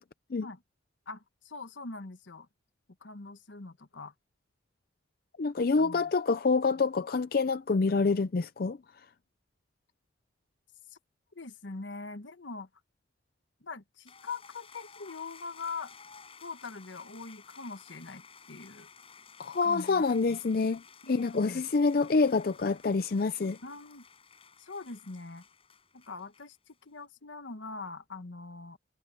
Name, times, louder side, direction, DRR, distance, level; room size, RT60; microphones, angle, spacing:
voice 1, 1.1-2.5 3.0-4.1 5.8-6.1 10.9-11.0 11.3-12.7 13.6-15.9 16.4-18.9 19.6-20.4 21.0-21.6 23.6-24.1 24.6-25.4 25.9-28.8, left 4 dB, 80° left, 1.2 m, -43 dB
voice 2, 5.4-8.8 19.4-20.8 21.1-23.6, left 4 dB, 50° left, 0.5 m, -27 dB
sound 1, 14.1-26.7, left 6 dB, 30° left, 6.7 m, -55 dB
head